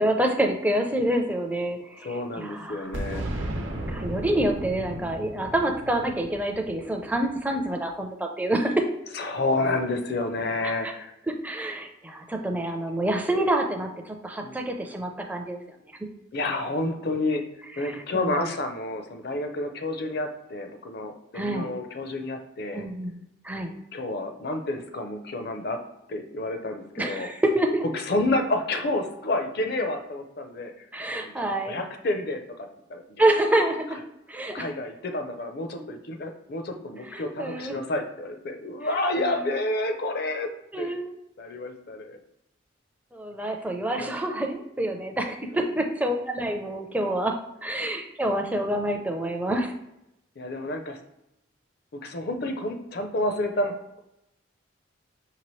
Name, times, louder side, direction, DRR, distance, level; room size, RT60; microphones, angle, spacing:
voice 1, 0.0-3.3 3.9-8.8 10.6-10.9 11.4-15.6 17.8-18.5 21.3-21.7 22.7-23.2 23.4-23.7 27.0-27.8 30.9-31.8 33.2-34.0 34.3-34.6 35.8-35.9 37.1-37.8 39.2-39.4 40.7-41.2 43.1-47.3 47.6-49.7, right 1 dB, 10° right, 3 dB, 0.4 m, -27 dB
voice 2, 2.0-3.3 9.1-11.1 14.4-14.5 16.3-17.4 17.8-22.8 23.9-25.8 26.1-27.3 27.9-30.7 31.1-33.0 34.5-40.5 40.8-41.0 41.4-42.2 44.0-44.2 45.5-45.6 50.4-51.0 51.9-54.0, left 2 dB, 50° left, 6 dB, 0.5 m, -29 dB
Boom, 2.9-7.6, right 1 dB, 75° right, 0.9 m, -35 dB
5.5 x 2.9 x 3.1 m, 0.86 s
head